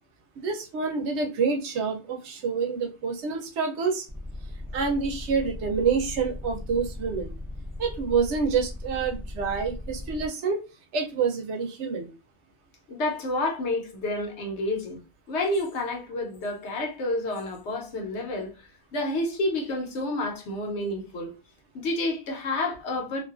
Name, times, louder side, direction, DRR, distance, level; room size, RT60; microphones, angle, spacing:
voice 1, 0.4-4.1 4.7-7.3 7.8-10.6 10.9-12.1, right 5 dB, 80° right, 0.9 m, -27 dB
sound 1, 4.1-10.3, left 1 dB, 5° right, 0.3 m, -37 dB
voice 2, 12.9-15.0 15.3-21.3 21.7-23.2, left 2 dB, 75° left, 1.1 m, -29 dB
2.5 x 2.3 x 2.4 m
omnidirectional pair, 1.2 m